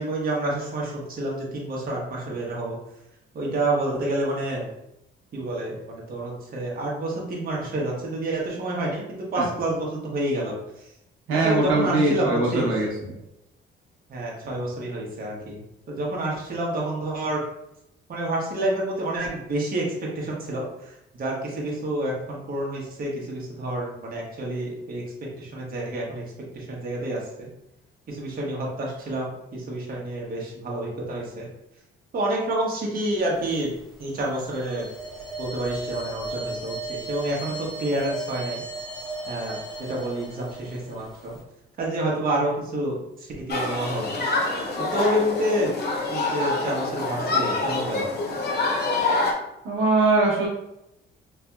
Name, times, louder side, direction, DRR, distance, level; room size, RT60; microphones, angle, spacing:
voice 1, 0.0-2.8 3.3-4.7 5.3-10.5 11.3-12.7 14.1-15.6 15.9-17.4 18.1-19.9 20.1-25.0 25.4-26.2 26.5-27.5 28.1-31.5 32.1-33.7 34.0-34.8 35.4-38.6 39.3-39.6 39.9-41.4 41.8-44.3 44.9-45.7 46.1-48.1, right 1 dB, 45° right, -3 dB, 1.0 m, -28 dB
voice 2, 11.3-13.1 49.6-50.5, right 2 dB, 80° right, -3 dB, 0.9 m, -21 dB
sound 1, 33.4-33.9 34.2-41.4, right 2 dB, ahead, 0.6 m, -36 dB
Human group actions, 43.5-49.3, left 3 dB, 55° left, 0.7 m, -26 dB
3.3 x 2.8 x 2.3 m, 0.84 s
cardioid pair, 115°, 21 cm